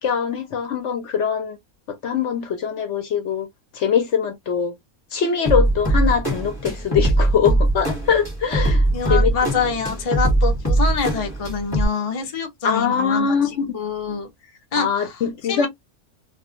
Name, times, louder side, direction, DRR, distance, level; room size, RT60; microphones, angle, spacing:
voice 1, 0.0-1.6 2.0-3.5 3.7-4.7 5.1-8.8 9.1-9.3 12.6-13.6 14.8-15.7, left 7 dB, 60° left, 0.9 m, -22 dB
sound 1, 5.5-11.9, right 1 dB, 15° left, 1.0 m, -21 dB
voice 2, 8.9-13.3 13.7-14.3 14.7-15.2 15.5-15.7, left 5 dB, 40° left, 0.5 m, -25 dB
2.4 x 2.3 x 2.7 m
omnidirectional pair, 1.6 m